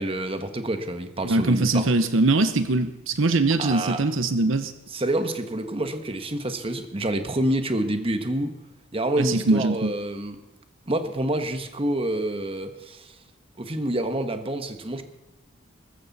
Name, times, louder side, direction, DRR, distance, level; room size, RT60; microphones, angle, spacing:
voice 1, 0.0-1.9 3.6-4.0 4.9-8.6 8.9-10.4 10.9-13.2 13.6-15.0, right 1 dB, 30° right, 8 dB, 1.3 m, -27 dB
voice 2, 1.2-4.7 9.2-9.9, right 2 dB, 70° right, 10 dB, 0.9 m, -22 dB
20.0 x 14.5 x 4.1 m, 1.0 s
head